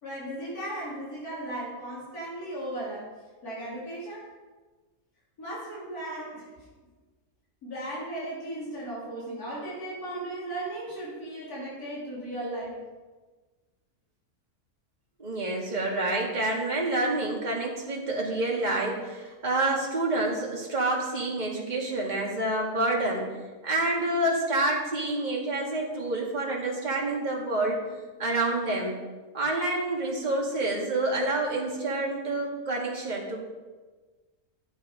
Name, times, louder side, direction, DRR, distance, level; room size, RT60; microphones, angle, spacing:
voice 1, 0.0-3.1 3.4-4.3 5.4-6.5 7.6-12.8, right 1 dB, 85° left, -7 dB, 3.7 m, -36 dB
voice 2, 15.2-23.3 23.6-27.8 28.2-29.0 29.3-33.4, right 2 dB, 30° right, -2 dB, 2.1 m, -28 dB
12.0 x 8.6 x 5.1 m, 1.3 s
omnidirectional pair, 1.5 m